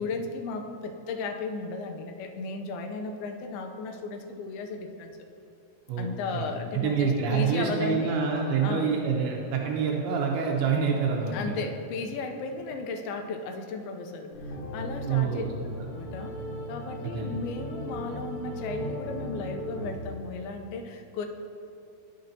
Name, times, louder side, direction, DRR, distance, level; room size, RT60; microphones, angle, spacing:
voice 1, 0.0-5.2 6.0-8.2 8.6-8.9 11.3-15.5 15.9-16.4 16.7-21.3, left 4 dB, 85° left, 4 dB, 2.5 m, -35 dB
voice 2, 5.9-6.4 6.7-11.6 15.1-15.5 17.0-17.4, right 6 dB, 85° right, -1 dB, 2.6 m, -27 dB
sound 1, 14.3-19.9, equal, 70° left, 2.6 m, -37 dB
11.5 x 6.5 x 2.6 m, 2.7 s
omnidirectional pair, 4.3 m